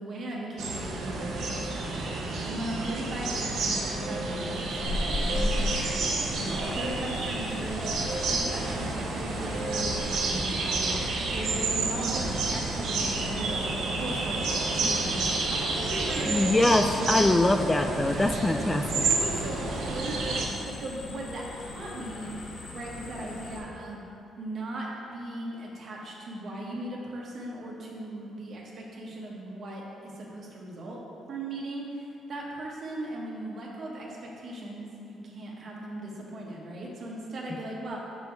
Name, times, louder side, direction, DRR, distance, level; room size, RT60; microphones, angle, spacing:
voice 1, 0.0-16.5 17.1-18.5 19.0-24.0 24.4-31.0 31.3-38.0, right 1 dB, 55° right, -2 dB, 1.3 m, -38 dB
sound 1, 0.6-20.5, right 3 dB, 75° right, 0.9 m, -30 dB
sound 2, 4.8-23.6, left 2 dB, 60° left, 1.5 m, -39 dB
voice 2, 16.3-19.0, left 2 dB, 15° left, 5 dB, 0.3 m, -23 dB
6.1 x 5.3 x 4.6 m, 2.7 s
cardioid pair, 90°, 0 cm